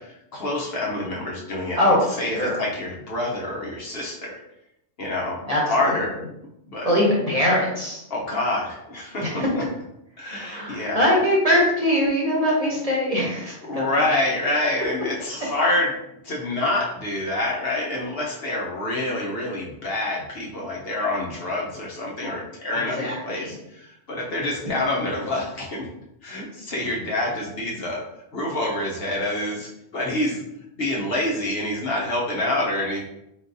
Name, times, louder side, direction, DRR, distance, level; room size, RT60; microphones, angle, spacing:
voice 1, 0.0-1.8 2.2-4.3 5.0-5.4 5.7-6.2 6.7-6.9 8.1-9.4 10.2-11.0 13.6-16.0 16.2-25.9 26.2-28.0 28.3-30.4 30.8-33.1, left 1 dB, 55° left, -3 dB, 1.0 m, -27 dB
voice 2, 1.8-2.6 5.5-5.6 5.9-6.0 6.8-8.0 9.2-9.5 10.3-14.1 22.9-23.5, equal, 35° right, -4 dB, 1.0 m, -22 dB
3.8 x 3.7 x 2.6 m, 0.82 s
omnidirectional pair, 1.3 m